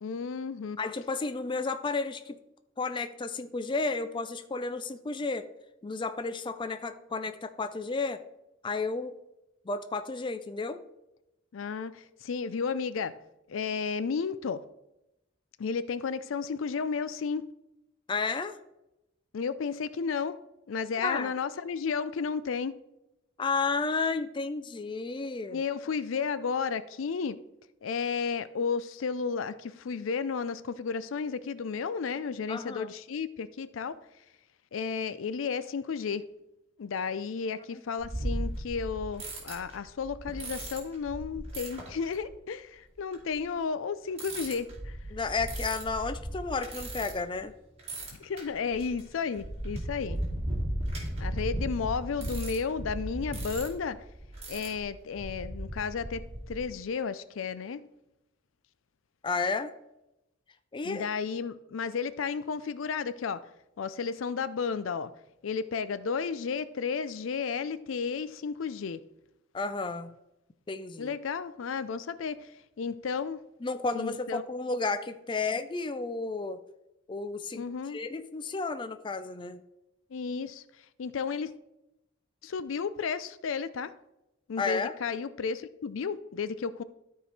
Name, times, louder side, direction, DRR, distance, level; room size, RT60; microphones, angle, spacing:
voice 1, 0.0-0.8 11.5-13.2 13.5-14.6 15.6-17.5 19.3-20.4 20.7-22.7 25.5-27.4 27.8-34.0 34.7-36.3 36.8-45.0 48.1-50.2 51.2-54.0 54.5-57.8 60.8-63.5 63.8-65.1 65.4-69.0 71.0-73.4 73.9-74.4 77.5-78.0 80.1-80.6 81.0-81.5 82.4-83.9 84.5-86.8, left 5 dB, 85° left, 15 dB, 0.4 m, -33 dB
voice 2, 0.8-2.4 2.8-5.5 5.8-8.2 8.6-9.2 9.7-10.8 18.1-18.6 21.0-21.3 23.4-25.6 32.5-32.9 45.1-47.5 59.2-59.7 60.7-61.1 69.5-70.1 70.7-71.1 73.6-76.6 77.1-77.6 77.9-79.6 84.6-84.9, left 4 dB, 25° left, 9 dB, 0.4 m, -32 dB
sound 1, 38.0-42.3 43.1-43.3 44.1-47.5 47.8-56.6, right 1 dB, 30° right, 2.5 m, -36 dB
13.0 x 4.6 x 3.3 m, 0.89 s
head